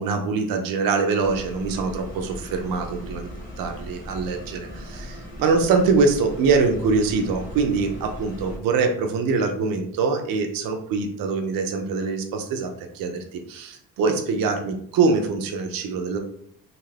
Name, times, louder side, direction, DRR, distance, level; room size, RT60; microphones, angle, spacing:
voice 1, 0.0-3.3 3.6-16.2, right 4 dB, 65° right, 4 dB, 0.5 m, -24 dB
sound 1, 1.2-8.6, equal, 20° left, 0.9 m, -38 dB
2.6 x 2.5 x 3.2 m, 0.66 s
cardioid pair, 180°, 37 cm